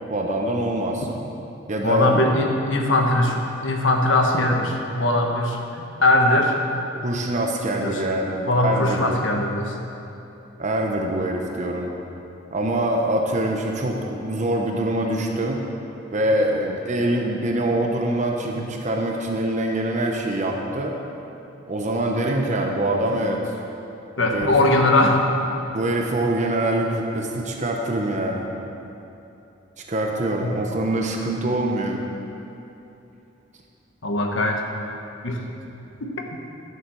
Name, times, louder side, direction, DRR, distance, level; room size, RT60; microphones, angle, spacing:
voice 1, 0.1-1.1 1.7-2.2 7.0-9.2 10.6-11.9 12.5-15.6 16.1-21.0 21.7-23.5 24.2-24.6 25.7-28.5 29.8-32.0, right 1 dB, 40° right, 1 dB, 0.9 m, -24 dB
voice 2, 1.8-5.6 6.0-6.6 7.8-8.0 8.5-9.7 24.2-25.2 30.4-30.5 34.0-34.6 35.2-35.4, left 2 dB, 75° left, 2 dB, 1.4 m, -20 dB
12.0 x 7.9 x 6.3 m, 2.9 s
head